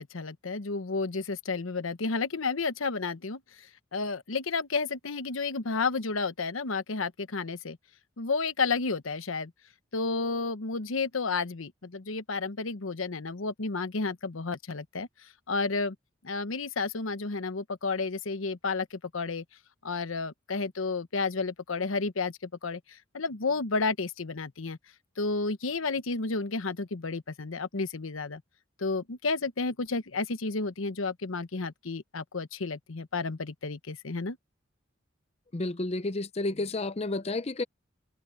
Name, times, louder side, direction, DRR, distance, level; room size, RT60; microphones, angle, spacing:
voice 1, 0.0-3.4 3.9-7.8 8.2-9.5 9.9-15.1 15.5-15.9 16.2-19.4 19.8-24.8 25.2-28.4 28.8-34.4, left 4 dB, 90° left, 1.0 m, -31 dB
voice 2, 35.5-37.6, left 2 dB, 30° left, 0.6 m, -31 dB
head